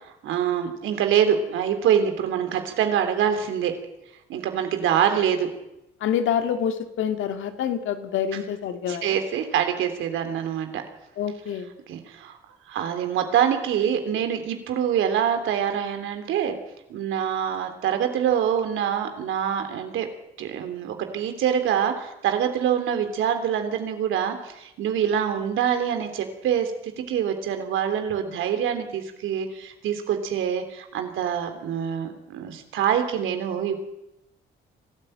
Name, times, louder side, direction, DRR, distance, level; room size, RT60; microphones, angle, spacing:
voice 1, 0.2-3.7 4.3-5.5 8.9-10.8 11.9-12.4 12.7-16.5 16.9-20.1 20.4-33.8, right 8 dB, 85° right, 6 dB, 3.3 m, -25 dB
voice 2, 6.0-9.2 11.2-11.7, left 8 dB, 80° left, 7 dB, 2.3 m, -27 dB
23.5 x 13.5 x 8.9 m, 0.87 s
cardioid pair, 90°, 20 cm